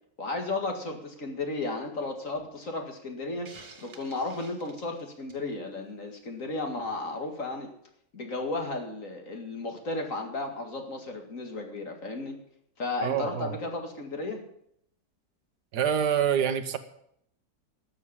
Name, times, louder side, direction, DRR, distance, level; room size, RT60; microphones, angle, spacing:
voice 1, 0.2-3.5 3.8-7.7 8.1-12.4 12.8-14.4, left 2 dB, 50° left, 3 dB, 2.5 m, -34 dB
Hiss, 3.4-5.5, right 4 dB, 35° right, 1.4 m, -50 dB
voice 2, 13.0-13.5 15.7-16.8, right 8 dB, 80° right, 10 dB, 1.6 m, -26 dB
12.5 x 7.3 x 10.0 m, 0.71 s
omnidirectional pair, 1.8 m